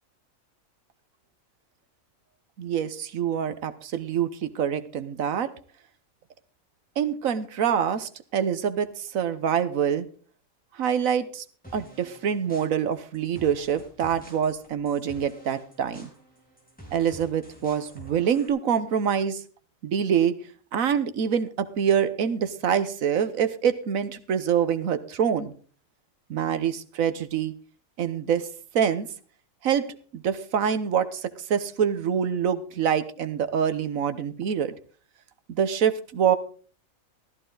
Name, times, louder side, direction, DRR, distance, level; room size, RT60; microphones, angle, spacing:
voice 1, 2.6-5.5 7.0-10.1 10.7-11.4 11.7-16.1 16.9-19.4 19.8-20.4 20.7-25.5 26.3-27.5 28.0-28.5 28.7-29.1 29.6-34.7 35.5-36.4, right 8 dB, 75° right, 11 dB, 1.4 m, -25 dB
sound 1, 11.6-18.5, right 1 dB, 5° left, 4.3 m, -49 dB
14.5 x 13.5 x 3.9 m, 0.41 s
omnidirectional pair, 1.4 m